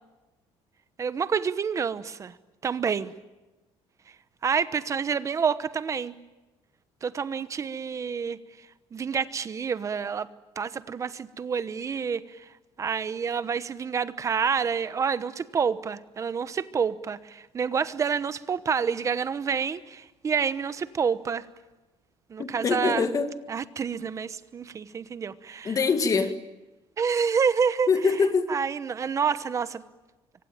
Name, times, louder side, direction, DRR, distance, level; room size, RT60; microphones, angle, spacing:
voice 1, 1.0-2.3 2.6-3.1 4.4-6.2 7.0-8.4 8.9-10.3 10.6-12.4 12.8-21.4 22.3-23.1 23.5-25.8 27.0-27.9 28.5-29.8, right 6 dB, 30° right, 14 dB, 1.0 m, -28 dB
voice 2, 22.4-23.3 25.6-26.3 27.9-28.5, left 5 dB, 30° left, 8 dB, 1.9 m, -24 dB
25.0 x 24.5 x 8.9 m, 1.1 s
cardioid pair, 155°, 11 cm